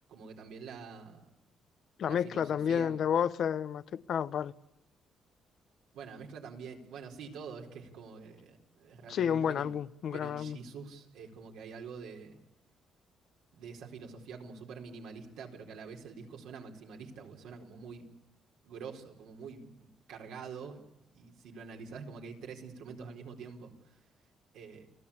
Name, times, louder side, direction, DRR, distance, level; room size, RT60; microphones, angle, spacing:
voice 1, 0.1-1.3 2.0-3.0 5.9-9.7 10.1-12.4 13.5-18.1 18.6-20.8 21.1-24.0 24.5-24.9, right 5 dB, 85° right, 4.3 m, -46 dB
voice 2, 2.0-4.5 9.1-10.6, left 8 dB, 65° left, 0.8 m, -30 dB
29.0 x 17.0 x 8.7 m
cardioid pair, 90°, 0 cm